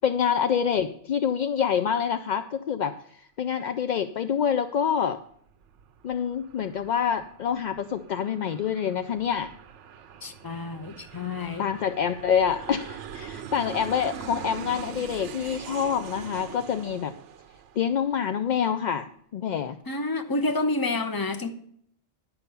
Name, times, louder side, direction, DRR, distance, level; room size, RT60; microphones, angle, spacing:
voice 1, 0.0-5.2 6.0-9.5 11.6-17.1 17.8-19.1 19.3-19.8, left 8 dB, 60° left, 0.5 m, -26 dB
Aircraft, 5.3-18.5, right 8 dB, 85° right, 1.0 m, -42 dB
voice 2, 10.2-11.7 19.9-21.5, left 2 dB, 25° left, 0.6 m, -29 dB
11.0 x 5.5 x 6.8 m
omnidirectional pair, 1.2 m